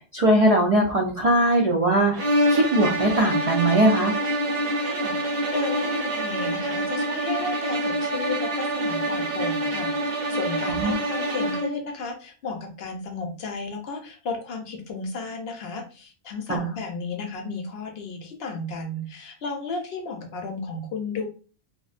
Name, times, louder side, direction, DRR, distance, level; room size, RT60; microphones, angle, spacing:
voice 1, 0.1-2.1 2.5-4.1 10.7-11.0 16.5-16.6, right 1 dB, 60° right, 0 dB, 0.3 m, -20 dB
sound 1, 2.1-11.8, right 1 dB, 80° right, 0.9 m, -26 dB
voice 2, 4.8-21.3, left 3 dB, 65° left, 3 dB, 0.8 m, -33 dB
2.5 x 2.1 x 2.4 m, 0.36 s
omnidirectional pair, 1.2 m